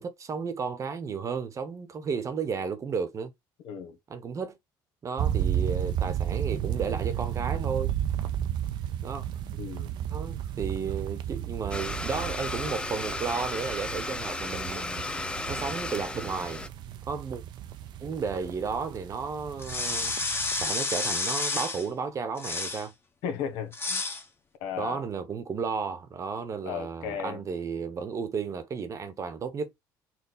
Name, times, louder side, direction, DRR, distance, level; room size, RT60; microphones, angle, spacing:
voice 1, 0.0-3.3 4.1-4.6 5.0-7.9 9.0-9.2 10.1-15.1 15.5-16.6 17.1-17.4 18.0-20.2 20.5-22.9 24.8-29.7, right 5 dB, 40° right, 1.0 m, -33 dB
voice 2, 3.6-4.0 9.6-9.9 23.2-24.0 24.6-25.0 26.6-27.4, left 8 dB, 80° left, 1.2 m, -35 dB
sound 1, 5.2-20.7, right 10 dB, 65° right, 0.6 m, -33 dB
Domestic sounds home sounds, 11.7-16.7, left 2 dB, 10° left, 0.5 m, -34 dB
sound 2, 19.6-21.9 22.4-22.9 23.7-24.2, left 3 dB, 30° left, 1.3 m, -30 dB
4.4 x 2.3 x 4.0 m
cardioid pair, 95°, 8 cm